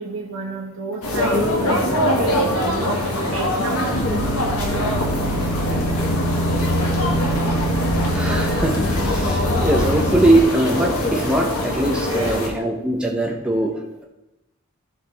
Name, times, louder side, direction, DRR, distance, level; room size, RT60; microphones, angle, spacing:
voice 1, 0.0-4.2 12.0-12.4, right 3 dB, 65° right, -2 dB, 1.6 m, -32 dB
sound 1, 1.0-12.5, left 1 dB, 80° left, 1.8 m, -23 dB
sound 2, 3.9-10.4, equal, 50° left, 1.0 m, -24 dB
voice 2, 8.1-13.7, right 1 dB, 5° right, -1 dB, 0.8 m, -21 dB
14.5 x 4.9 x 3.5 m, 0.97 s
head